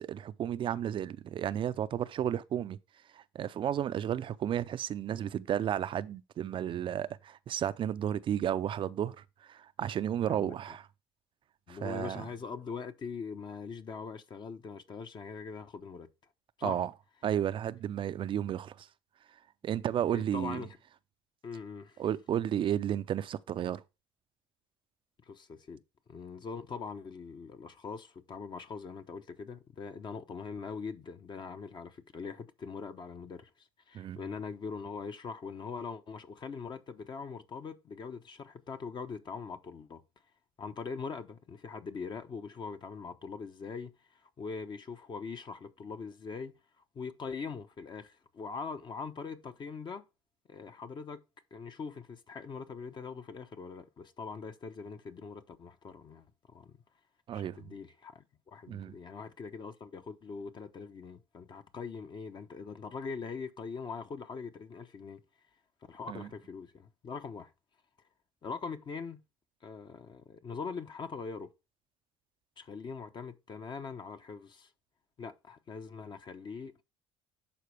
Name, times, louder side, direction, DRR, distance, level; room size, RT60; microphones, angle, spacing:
voice 1, 0.0-2.8 3.1-10.8 11.7-12.2 16.6-16.9 17.2-18.9 19.6-20.6 22.0-23.8 33.9-34.2 57.3-57.7 58.7-58.9 66.1-66.3, right 10 dB, 45° right, 0.5 m, -33 dB
voice 2, 11.7-16.1 16.6-16.8 20.1-20.8 21.4-22.0 25.3-25.8 26.1-40.0 40.6-46.5 46.9-50.0 50.5-51.2 51.5-56.8 57.3-65.2 65.9-67.5 68.4-69.2 69.6-71.5 72.6-74.7 75.2-76.8, left 5 dB, 40° left, 0.9 m, -42 dB
11.0 x 4.3 x 3.3 m
supercardioid pair, 85°, 12 cm